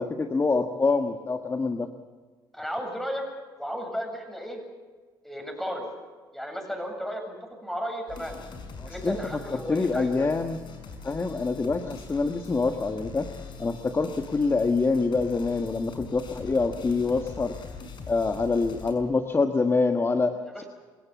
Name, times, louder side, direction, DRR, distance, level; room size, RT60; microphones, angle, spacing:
voice 1, 0.0-1.9 8.8-10.6 11.0-13.3 13.6-17.5 18.1-20.6, left 3 dB, 25° left, 6 dB, 1.4 m, -26 dB
voice 2, 2.5-3.3 3.6-4.6 5.2-5.9 6.3-7.4 7.6-8.4 8.9-10.3 20.5-20.7, equal, 5° left, 3 dB, 7.8 m, -34 dB
sound 1, 8.1-18.9, left 5 dB, 55° left, 5.6 m, -42 dB
26.5 x 17.0 x 7.3 m, 1.4 s
supercardioid pair, 75°, 10 cm